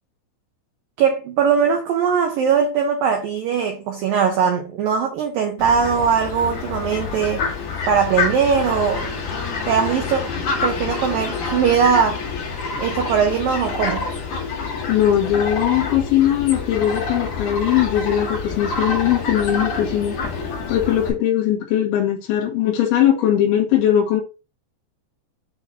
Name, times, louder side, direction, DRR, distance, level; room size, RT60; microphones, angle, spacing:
voice 1, 1.0-7.5 7.9-9.2 9.7-10.3 10.6-12.3 12.8-14.1, right 7 dB, 85° right, 2.0 m, -20 dB
Fowl, 5.6-21.1, left 4 dB, 50° left, 3.2 m, -27 dB
voice 2, 14.9-20.1 20.7-24.2, left 11 dB, 80° left, 4.1 m, -19 dB
8.7 x 3.8 x 2.8 m
omnidirectional pair, 5.4 m